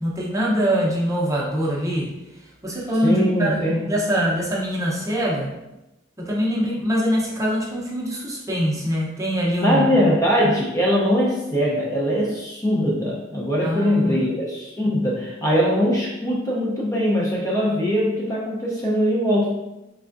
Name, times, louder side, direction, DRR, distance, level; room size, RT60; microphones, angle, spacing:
voice 1, 0.0-2.1 2.6-5.5 6.2-10.1 13.6-14.3, equal, 15° right, -4 dB, 0.7 m, -23 dB
voice 2, 3.0-3.9 9.6-19.6, equal, 15° left, -4 dB, 0.6 m, -21 dB
3.6 x 3.4 x 2.5 m, 0.98 s
head